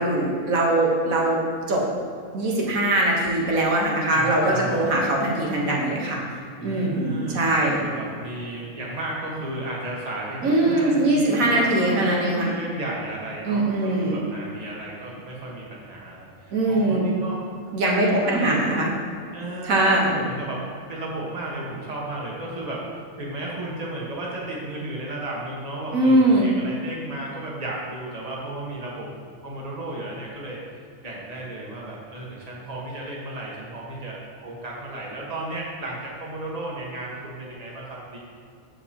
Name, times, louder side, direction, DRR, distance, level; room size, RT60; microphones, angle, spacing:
voice 1, 0.0-1.4 1.7-1.8 2.3-6.2 6.6-7.8 10.4-12.5 13.5-14.2 16.5-17.1 17.7-18.9 19.6-20.1 25.9-26.5, right 1 dB, 80° right, -2 dB, 1.7 m, -21 dB
voice 2, 4.1-4.9 6.6-17.4 17.8-18.6 19.3-20.6 20.9-22.8 23.2-29.1 29.4-30.6 31.0-38.2, right 1 dB, 30° right, -4 dB, 1.4 m, -34 dB
14.5 x 4.8 x 2.9 m, 2.3 s
omnidirectional pair, 1.4 m